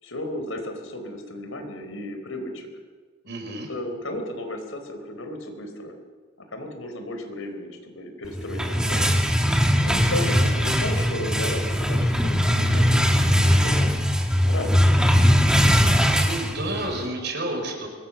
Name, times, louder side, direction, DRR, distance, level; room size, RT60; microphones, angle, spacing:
voice 1, 0.0-2.7 3.7-6.0 6.5-9.2 9.8-13.9 14.5-15.0, left 1 dB, 75° left, 6 dB, 4.2 m, -34 dB
voice 2, 3.2-3.7 10.1-10.5 16.1-17.9, right 1 dB, 55° right, 3 dB, 5.4 m, -31 dB
sound 1, 8.3-17.0, equal, 5° right, 2.2 m, -20 dB
25.0 x 21.5 x 6.9 m, 1.5 s
head